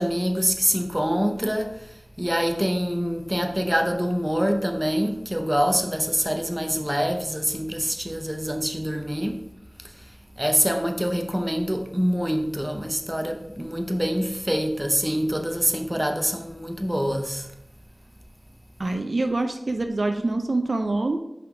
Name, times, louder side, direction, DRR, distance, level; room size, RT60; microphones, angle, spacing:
voice 1, 0.0-1.8 2.2-9.5 10.4-17.5, equal, 10° right, 0.7 m, -25 dB
voice 2, 18.8-21.2, right 2 dB, 60° right, 0.5 m, -25 dB
5.5 x 3.7 x 5.0 m
wide cardioid pair, 60°, 0 cm